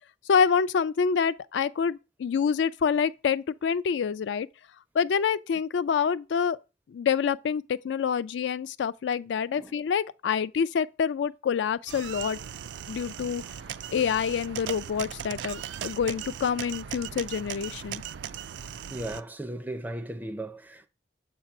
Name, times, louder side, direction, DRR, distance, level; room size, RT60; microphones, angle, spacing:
voice 1, 0.3-4.5 4.9-6.6 6.9-12.4 12.9-13.4 13.9-18.0, left 6 dB, 80° left, 0.3 m, -27 dB
sound 1, 11.9-19.2, right 9 dB, 90° right, 0.4 m, -38 dB
voice 2, 18.9-20.9, right 1 dB, 10° right, 0.4 m, -36 dB
7.3 x 2.8 x 5.8 m
head